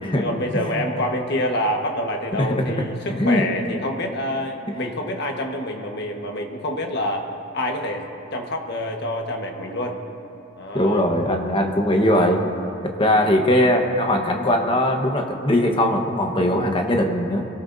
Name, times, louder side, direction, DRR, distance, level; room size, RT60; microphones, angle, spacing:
voice 1, 0.0-7.3 7.5-10.0 10.6-11.0 13.1-13.2, left 1 dB, 50° left, 2 dB, 1.4 m, -27 dB
voice 2, 2.3-3.4 10.7-12.4 12.8-17.5, left 1 dB, 25° left, 2 dB, 1.2 m, -20 dB
24.0 x 18.0 x 2.7 m, 2.8 s
head